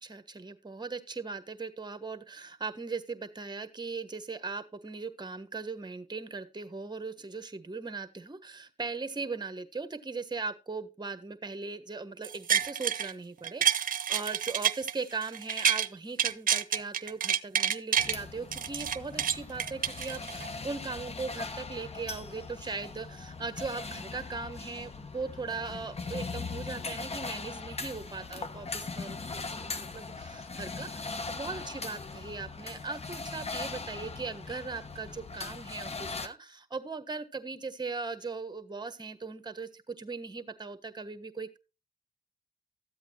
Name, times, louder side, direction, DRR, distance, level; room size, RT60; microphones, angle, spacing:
voice 1, 0.0-41.6, right 4 dB, 25° right, 9 dB, 1.4 m, -39 dB
sound 1, 12.2-13.1 13.4-15.9 16.2-18.2 18.5-20.5 21.0-21.1, right 9 dB, 55° right, 0.8 m, -28 dB
sound 2, 18.0-36.3, left 4 dB, 40° left, 1.3 m, -40 dB
13.5 x 8.1 x 3.0 m, 0.30 s
supercardioid pair, 45°, 17 cm